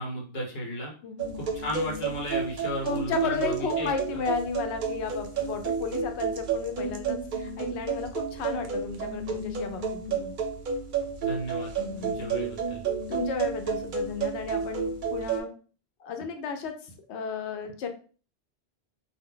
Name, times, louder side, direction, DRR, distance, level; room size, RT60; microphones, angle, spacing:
voice 1, 0.0-0.9 1.4-4.2 11.2-11.7 12.0-12.8, equal, 65° left, 0 dB, 1.1 m, -35 dB
voice 2, 1.0-1.4 2.8-10.3 11.8-12.1 13.1-15.5 16.0-17.9, left 5 dB, 90° left, 6 dB, 0.8 m, -34 dB
sound 1, 1.2-15.4, right 6 dB, 60° right, 0.6 m, -31 dB
2.1 x 2.1 x 3.7 m, 0.38 s
omnidirectional pair, 1.1 m